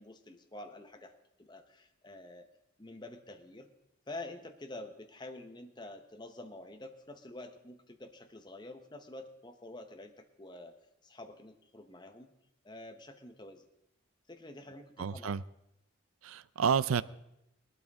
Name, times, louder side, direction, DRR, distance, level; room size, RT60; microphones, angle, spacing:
voice 1, 0.0-2.5 2.8-3.7 4.1-10.7 11.0-12.3 12.6-13.7 14.3-15.4, left 2 dB, 20° left, 6 dB, 0.9 m, -48 dB
voice 2, 15.0-15.4 16.2-17.0, right 6 dB, 90° right, 17 dB, 0.5 m, -30 dB
19.5 x 12.5 x 3.6 m, 0.85 s
head